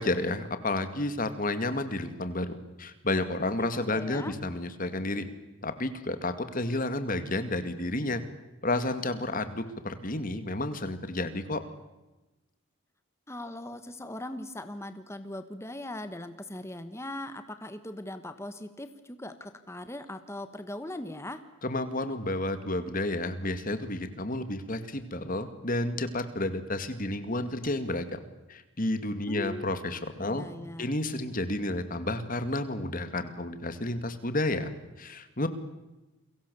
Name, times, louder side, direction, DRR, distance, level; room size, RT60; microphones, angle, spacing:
voice 1, 0.0-5.3 5.6-8.2 8.6-11.6 21.6-28.2 28.5-30.5 30.8-34.7 35.0-35.5, left 2 dB, 40° left, 10 dB, 2.2 m, -31 dB
voice 2, 3.6-4.4 13.3-21.4 29.3-29.7 30.2-30.9, left 1 dB, 10° left, 9 dB, 1.3 m, -40 dB
29.5 x 23.0 x 7.0 m, 1.0 s
head